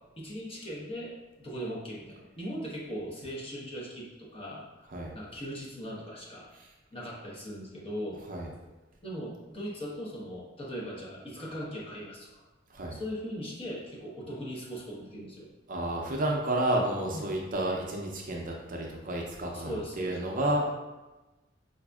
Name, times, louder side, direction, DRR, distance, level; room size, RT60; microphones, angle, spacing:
voice 1, 0.2-6.5 6.9-8.2 9.0-12.5 12.9-15.5 17.1-17.3 19.5-20.2, equal, 30° left, -4 dB, 0.9 m, -39 dB
voice 2, 15.7-20.7, right 1 dB, 45° right, 0 dB, 0.5 m, -31 dB
5.0 x 2.5 x 2.3 m, 1.1 s
head